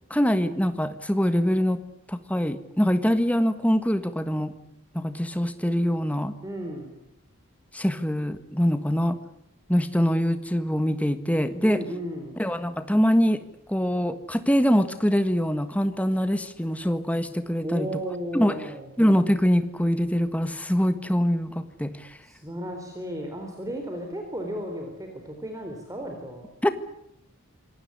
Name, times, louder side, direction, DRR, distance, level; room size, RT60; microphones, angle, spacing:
voice 1, 0.1-1.8 2.1-4.5 4.9-6.3 7.7-9.2 9.7-11.8 12.4-13.4 13.7-18.0 18.3-18.6 19.0-22.2 26.6-26.7, equal, 5° left, 10 dB, 1.6 m, -24 dB
voice 2, 6.4-6.9 11.6-12.4 17.6-18.9 22.2-26.5, equal, 15° right, 3 dB, 4.0 m, -34 dB
26.0 x 18.5 x 9.9 m, 0.82 s
head